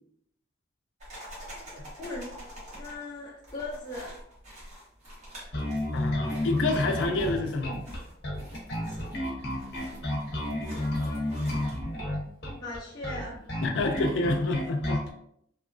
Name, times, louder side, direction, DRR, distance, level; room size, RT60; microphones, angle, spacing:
sound 1, 1.0-11.9, equal, 40° right, 1.2 m, -47 dB
voice 1, 1.5-2.3 2.7-4.2 8.9-9.0 10.8-11.5 12.6-13.4, left 2 dB, 20° left, -6 dB, 0.5 m, -39 dB
Bass guitar, 5.5-15.1, left 1 dB, 60° left, 0.8 m, -31 dB
voice 2, 5.9-7.8 13.6-15.0, left 2 dB, 80° left, 6 dB, 0.4 m, -28 dB
2.9 x 2.2 x 2.4 m, 0.69 s
head